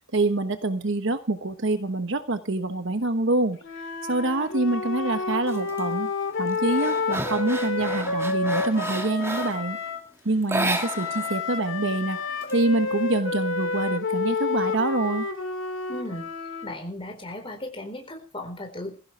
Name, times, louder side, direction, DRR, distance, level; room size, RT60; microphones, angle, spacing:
voice 1, 0.1-3.6 4.1-6.1 6.4-9.8 10.2-12.2 12.5-15.3, right 2 dB, 65° right, 9 dB, 1.2 m, -26 dB
Wind instrument woodwind instrument, 3.6-10.0 10.7-16.8, left 3 dB, 65° left, 2.4 m, -29 dB
sound 1, 5.5-5.8 6.2-9.7 10.4-11.4 11.6-11.7 12.1-13.1, right 1 dB, 15° right, 2.2 m, -32 dB
voice 2, 15.9-19.0, left 1 dB, 25° left, 5 dB, 4.3 m, -36 dB
20.5 x 16.0 x 3.4 m, 0.36 s
head